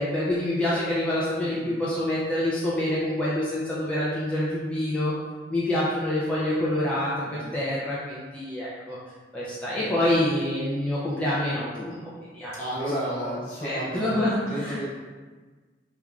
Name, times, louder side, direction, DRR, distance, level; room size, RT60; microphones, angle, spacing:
voice 1, 0.0-5.1 5.5-9.0 9.3-12.5 13.0-13.3 13.6-14.9, left 1 dB, 5° left, -9 dB, 0.3 m, -27 dB
voice 2, 1.4-1.7 7.2-7.5 9.8-10.2 12.6-14.9, right 1 dB, 40° left, -7 dB, 0.9 m, -33 dB
3.1 x 2.3 x 2.3 m, 1.4 s
head